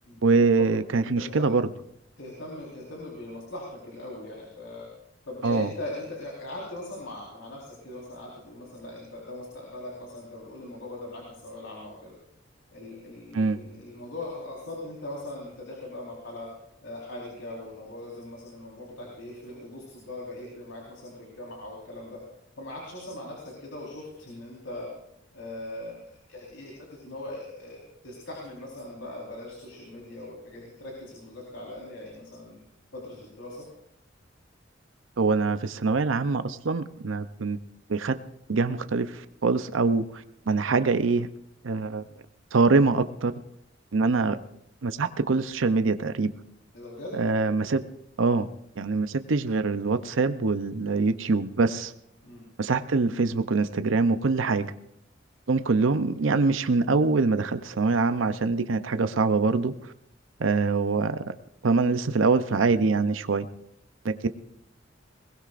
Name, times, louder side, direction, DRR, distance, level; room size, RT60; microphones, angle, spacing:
voice 1, 0.2-1.6 5.4-5.7 13.3-13.6 35.2-37.6 37.9-38.2 38.5-41.3 41.6-42.0 42.5-43.3 43.9-44.4 44.8-46.3 47.2-47.8 48.2-48.5 48.8-51.9 52.6-54.7 55.5-59.7 60.4-61.3 61.6-63.5 64.0-64.3, right 4 dB, 90° right, 11 dB, 0.7 m, -24 dB
voice 2, 1.1-1.5 2.2-4.9 5.2-12.2 12.7-16.5 16.8-22.2 22.6-24.9 25.3-26.0 26.3-26.7 27.0-32.6 32.9-33.7 46.7-47.1 52.2-52.4, left 1 dB, 90° left, -2 dB, 4.3 m, -40 dB
21.5 x 20.0 x 2.5 m, 0.79 s
head